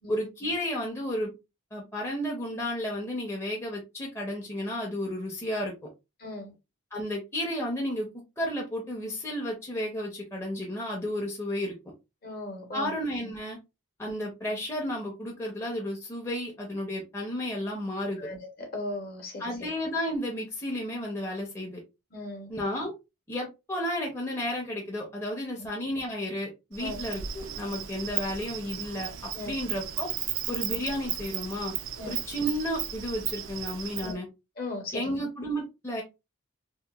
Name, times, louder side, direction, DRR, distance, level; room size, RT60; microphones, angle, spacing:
voice 1, 0.1-1.3 1.7-5.7 6.9-8.1 8.4-11.7 12.7-13.6 14.0-18.2 19.4-21.8 22.5-22.9 23.3-29.1 29.4-30.1 30.5-31.7 32.1-34.3 34.9-36.0, equal, 10° left, 0.5 m, -32 dB
voice 2, 6.2-6.5 12.2-13.0 18.2-19.5 22.1-22.5 25.6-25.7 26.8-27.0 29.3-29.6 32.0-32.2 34.0-34.2 34.6-35.2, left 2 dB, 45° left, 0.8 m, -37 dB
Insect, 26.7-34.1, right 10 dB, 65° right, 0.3 m, -35 dB
2.8 x 2.1 x 2.3 m
head